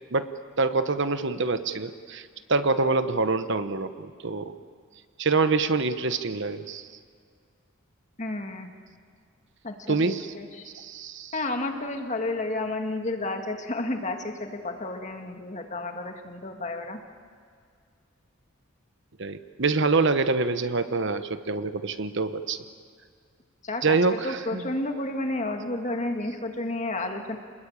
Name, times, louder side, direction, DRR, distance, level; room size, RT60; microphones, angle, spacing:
voice 1, 0.6-4.5 5.2-6.9 9.9-10.3 10.6-11.3 19.2-22.6 23.8-24.7, right 3 dB, 60° right, 10 dB, 1.0 m, -26 dB
voice 2, 8.2-8.7 9.6-10.7 11.3-17.0 23.6-27.4, left 2 dB, 35° left, 4 dB, 2.0 m, -31 dB
27.5 x 20.5 x 8.8 m, 2.1 s
head